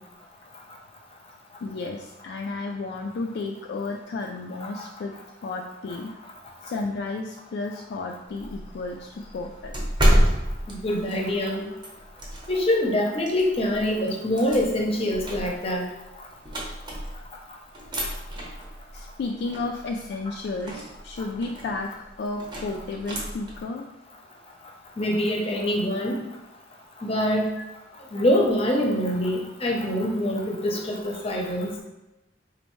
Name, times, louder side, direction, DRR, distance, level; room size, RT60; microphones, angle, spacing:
voice 1, 1.6-5.1 5.4-6.1 6.6-9.7 18.9-23.9 27.6-27.7, left 3 dB, 60° left, 1 dB, 0.3 m, -32 dB
sound 1, 8.3-12.7 13.2-17.4 17.7-23.6, equal, 25° right, 0.8 m, -29 dB
voice 2, 10.7-11.7 12.5-15.8 25.0-26.2 27.0-27.5 28.1-31.7, left 1 dB, 30° left, 0 dB, 0.6 m, -24 dB
4.2 x 2.6 x 3.0 m, 0.99 s
head